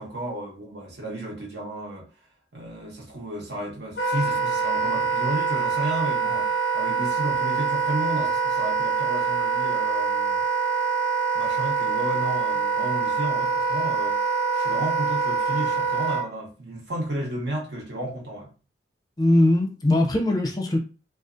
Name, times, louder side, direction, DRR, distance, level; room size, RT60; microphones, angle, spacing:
voice 1, 0.0-2.0 2.5-10.4 11.3-14.2 14.5-18.5, right 1 dB, 70° right, 1.0 m, -33 dB
Wind instrument woodwind instrument, 4.0-16.3, right 5 dB, 85° left, 0.4 m, -25 dB
voice 2, 19.2-20.8, left 1 dB, 20° left, 0.5 m, -20 dB
2.5 x 2.3 x 2.5 m
head